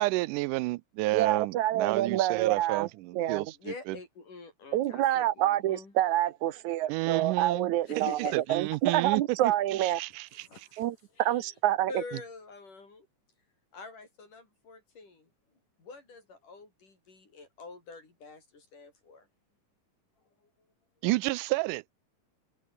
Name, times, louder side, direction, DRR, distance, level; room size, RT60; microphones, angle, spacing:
voice 1, 0.0-3.5 6.9-7.7 8.0-8.1 8.3-9.5 9.8-10.5 21.0-21.8, right 21 dB, 90° right, 2.2 m, -30 dB
voice 2, 1.1-2.9 3.1-3.5 4.7-8.2 8.5-10.0 10.8-12.0, right 13 dB, 75° right, 2.2 m, -27 dB
voice 3, 3.5-5.9 7.9-8.6 10.5-10.9 11.2-11.4 11.8-13.1 13.7-15.3 15.8-19.3, left 4 dB, 85° left, 8.8 m, -46 dB
omnidirectional pair, 3.6 m